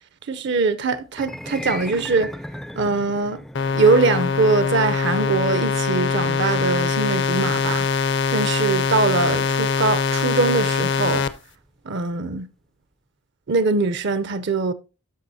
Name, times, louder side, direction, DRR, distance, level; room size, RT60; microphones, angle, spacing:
voice 1, 0.3-2.3 2.8-3.4 3.7-7.9 8.3-11.3 11.9-12.5 13.5-14.7, right 3 dB, 55° right, 0.5 m, -22 dB
sound 1, 1.1-11.4, left 1 dB, ahead, 0.3 m, -39 dB
sound 2, 3.5-11.3, left 5 dB, 55° left, 0.6 m, -22 dB
13.0 x 5.5 x 2.7 m
head